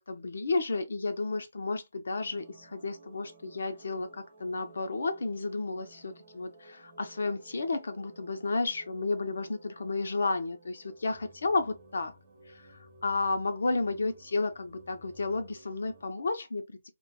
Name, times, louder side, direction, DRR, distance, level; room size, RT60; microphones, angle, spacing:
voice 1, 0.0-12.2 12.5-16.8, left 3 dB, 65° left, 0.4 m, -32 dB
sound 1, 2.2-16.1, right 1 dB, 40° right, 0.8 m, -56 dB
2.2 x 2.1 x 2.6 m
figure-of-eight pair, 145°, 0 cm